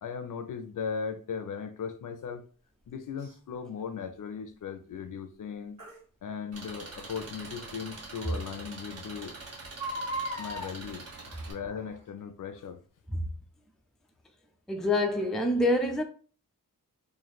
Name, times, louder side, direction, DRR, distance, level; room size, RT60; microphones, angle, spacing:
voice 1, 0.0-2.4 2.9-5.8 6.2-9.3 10.4-12.8, left 6 dB, 65° left, 0.6 m, -38 dB
Crying sobbing, 3.2-3.3 5.8-6.0 7.6-7.7 8.2-8.3 8.5-8.6 9.6-10.7 11.7-12.0 12.6-12.7, right 1 dB, 90° right, 1.6 m, -36 dB
Engine, 6.5-11.5, right 3 dB, 50° right, 1.0 m, -44 dB
voice 2, 14.7-16.0, left 1 dB, ahead, 0.3 m, -26 dB
3.2 x 2.6 x 4.0 m
wide cardioid pair, 175°, 33 cm